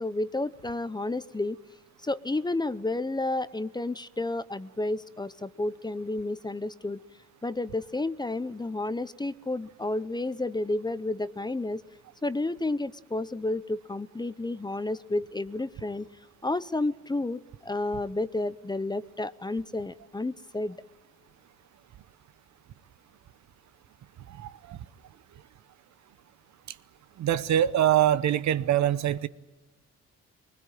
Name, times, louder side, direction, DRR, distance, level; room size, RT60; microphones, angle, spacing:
voice 1, 0.0-1.6 2.0-7.0 7.4-11.8 12.2-16.1 16.4-20.8, left 2 dB, 15° left, 0.7 m, -31 dB
voice 2, 24.4-24.8 27.2-29.3, right 11 dB, 65° right, 1.0 m, -24 dB
22.0 x 20.0 x 9.1 m
cardioid pair, 90°, 30 cm